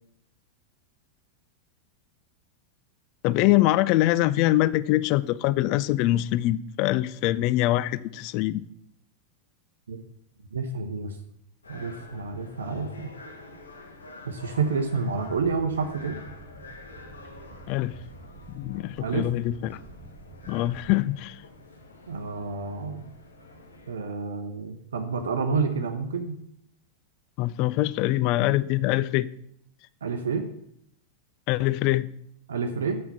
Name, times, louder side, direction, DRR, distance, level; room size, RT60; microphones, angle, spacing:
voice 1, 3.2-8.6 17.7-17.9 18.5-19.8 20.5-21.4 27.4-29.3 31.5-32.1, left 16 dB, 45° left, 0.3 m, -24 dB
voice 2, 10.5-11.2 11.7-13.1 14.3-16.2 19.0-19.3 22.1-23.1 23.9-26.4 30.0-30.5 32.5-33.0, right 4 dB, 65° right, 0.7 m, -29 dB
sound 1, 11.6-23.9, left 2 dB, 75° left, 1.2 m, -47 dB
sound 2, 15.2-20.9, right 3 dB, 45° right, 1.1 m, -48 dB
7.6 x 5.7 x 5.7 m
figure-of-eight pair, 90°, 0 cm